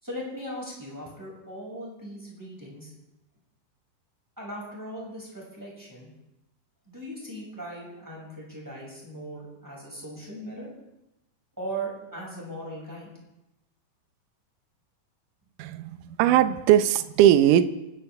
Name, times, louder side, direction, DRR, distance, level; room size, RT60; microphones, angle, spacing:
voice 1, 0.0-2.9 4.4-6.1 6.9-10.7 11.6-13.1, right 1 dB, 5° right, -4 dB, 6.2 m, -38 dB
voice 2, 15.6-17.6, right 11 dB, 75° right, 10 dB, 2.1 m, -19 dB
28.5 x 12.5 x 3.5 m, 0.93 s
omnidirectional pair, 4.3 m